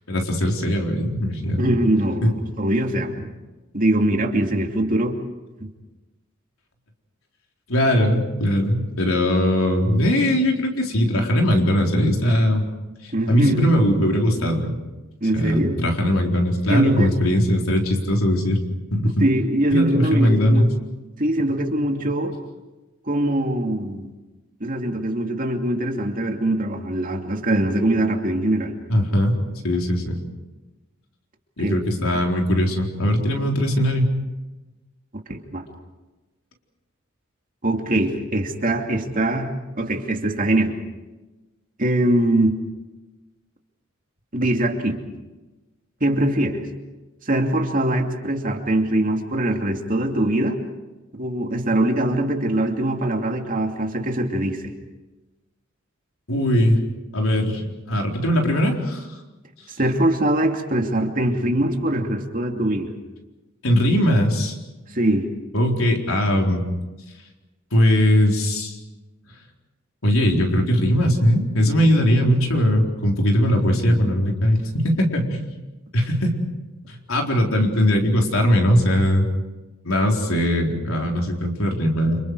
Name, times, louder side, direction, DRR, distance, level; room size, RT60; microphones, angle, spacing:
voice 1, 0.1-1.6 2.2-2.3 7.7-12.6 13.0-14.8 15.3-18.6 18.9-19.2 19.7-20.7 28.9-29.4 29.6-30.2 31.6-34.1 56.3-56.8 57.1-57.6 57.9-59.1 63.6-64.6 65.5-66.6 67.7-68.8 70.0-75.4 75.9-76.4 76.9-79.3 79.8-82.2, equal, 80° left, 1 dB, 4.1 m, -20 dB
voice 2, 1.6-3.3 3.7-5.2 13.1-13.7 15.2-15.8 16.7-17.2 19.2-20.7 21.2-22.3 23.1-24.1 24.6-28.7 31.6-31.8 35.3-35.6 37.6-39.5 39.7-40.7 41.8-42.6 44.3-45.0 46.0-46.6 47.2-50.6 51.2-54.7 59.8-62.9 64.9-65.3, right 1 dB, 40° right, 2 dB, 2.7 m, -22 dB
29.5 x 27.5 x 4.9 m, 1.1 s
head